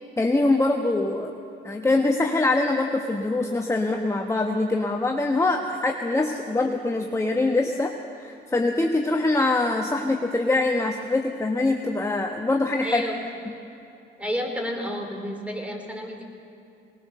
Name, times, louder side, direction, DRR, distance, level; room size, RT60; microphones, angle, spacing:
voice 1, 0.2-1.3 1.6-13.0, left 2 dB, 15° left, 2 dB, 1.2 m, -24 dB
voice 2, 12.8-13.1 14.2-16.2, equal, 5° right, 3 dB, 3.8 m, -30 dB
20.5 x 20.0 x 6.7 m, 2.8 s
cardioid pair, 90°, 20 cm